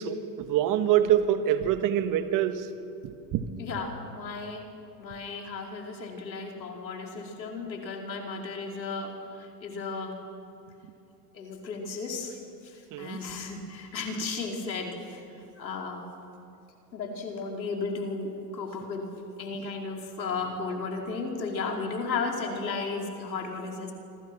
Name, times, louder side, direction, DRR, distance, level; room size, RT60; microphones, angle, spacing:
voice 1, 0.0-2.7 3.3-3.6 12.9-13.2, right 10 dB, 40° right, 9 dB, 1.7 m, -25 dB
voice 2, 3.6-4.6 5.0-10.2 11.3-12.4 12.6-15.2 15.6-16.0 16.9-19.1 19.4-23.9, left 4 dB, 90° left, 1 dB, 4.7 m, -34 dB
26.0 x 26.0 x 6.2 m, 2.8 s
hypercardioid pair, 105°, 50 cm